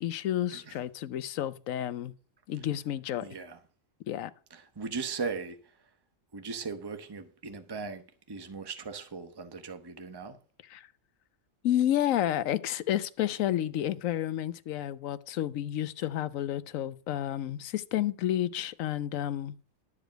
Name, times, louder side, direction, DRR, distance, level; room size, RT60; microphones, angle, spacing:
voice 1, 0.0-2.1 2.5-3.3 4.1-4.3 10.6-10.9 11.6-19.5, left 12 dB, 80° left, 1.1 m, -30 dB
voice 2, 3.2-3.6 4.5-5.6 6.3-8.0 8.3-10.4, right 4 dB, 20° right, 1.0 m, -38 dB
12.0 x 5.0 x 7.7 m
omnidirectional pair, 1.4 m